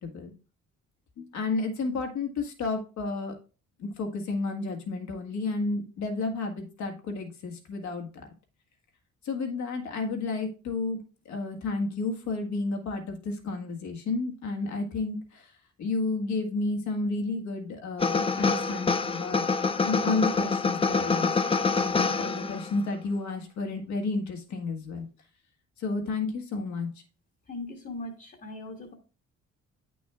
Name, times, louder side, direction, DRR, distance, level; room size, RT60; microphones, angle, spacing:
voice 1, 0.0-0.3 1.2-3.3 3.8-8.2 9.2-11.0 11.2-15.5 15.8-19.4 19.8-21.4 21.8-25.1 25.8-26.9, left 3 dB, 70° left, 3 dB, 1.7 m, -31 dB
sound 1, 18.0-22.8, left 4 dB, 20° left, 0.5 m, -26 dB
voice 2, 27.5-28.9, left 2 dB, 35° left, 1 dB, 1.4 m, -39 dB
8.9 x 6.2 x 2.4 m, 0.35 s
cardioid pair, 90°, 30 cm